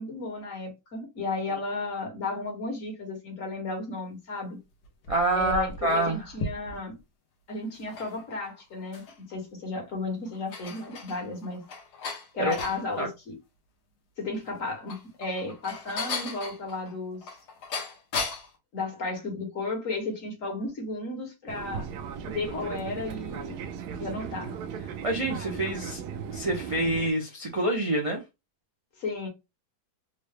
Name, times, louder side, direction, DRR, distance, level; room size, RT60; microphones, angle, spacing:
voice 1, 0.0-4.6 5.3-7.0 7.5-11.6 12.4-13.3 14.2-17.2 18.7-21.9 22.2-23.6 24.0-24.5 29.0-29.3, left 3 dB, 55° left, 1.6 m, -34 dB
sound 1, 4.8-7.0 7.7-9.3 9.8-9.9 10.3-12.8 14.6-18.6, left 3 dB, 80° left, 1.5 m, -37 dB
voice 2, 5.1-6.2 12.4-12.6 13.0-13.1 25.0-26.0 26.3-28.2, right 1 dB, 65° right, 0.3 m, -27 dB
Fixed-wing aircraft airplane, 21.5-27.1, right 7 dB, 80° right, 1.1 m, -37 dB
3.8 x 2.1 x 3.3 m
omnidirectional pair, 1.7 m